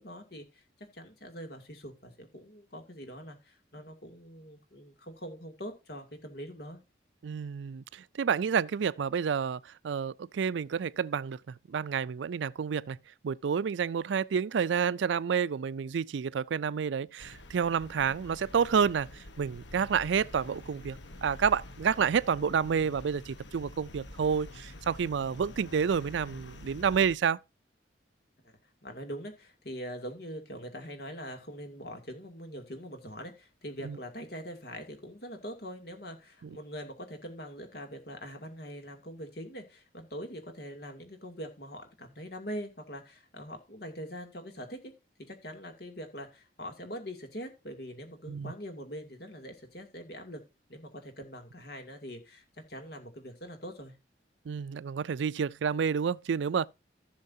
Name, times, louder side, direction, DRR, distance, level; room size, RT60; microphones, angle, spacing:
voice 1, 0.0-6.8 28.4-28.5 28.8-44.9 45.2-50.4 50.7-54.0, equal, 55° left, 2.5 m, -43 dB
voice 2, 7.2-11.4 11.7-13.0 13.2-19.1 19.4-27.4 33.8-34.0 48.3-48.5 54.5-56.7, right 6 dB, 80° right, 0.4 m, -29 dB
sound 1, 17.2-27.2, left 1 dB, 80° left, 1.1 m, -47 dB
15.5 x 6.4 x 2.7 m
head